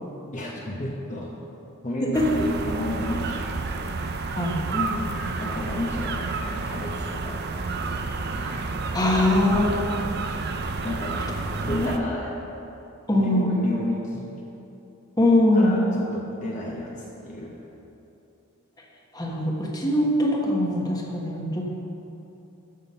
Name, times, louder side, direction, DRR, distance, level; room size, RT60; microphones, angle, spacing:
voice 1, 0.3-1.4 1.8-3.5 4.7-7.5 9.5-9.8 10.8-12.4 13.1-14.3 15.5-17.7, left 1 dB, 35° left, -3 dB, 1.1 m, -32 dB
sound 1, 2.1-12.0, right 3 dB, 50° right, 0.6 m, -30 dB
voice 2, 8.9-9.7 11.7-11.9 13.1-13.5 15.2-15.8 19.1-21.6, left 1 dB, 20° left, -2 dB, 1.3 m, -22 dB
13.5 x 6.0 x 5.6 m, 2.9 s
head